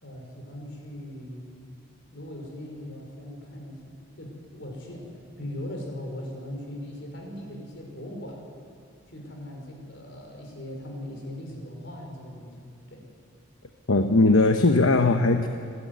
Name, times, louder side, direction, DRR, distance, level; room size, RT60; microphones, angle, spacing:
voice 1, 0.0-1.5 2.1-3.9 4.2-8.4 9.1-13.0, left 1 dB, 60° left, 1 dB, 5.2 m, -39 dB
voice 2, 13.9-15.5, left 2 dB, 80° left, 6 dB, 1.0 m, -19 dB
28.0 x 12.5 x 9.6 m, 2.4 s
head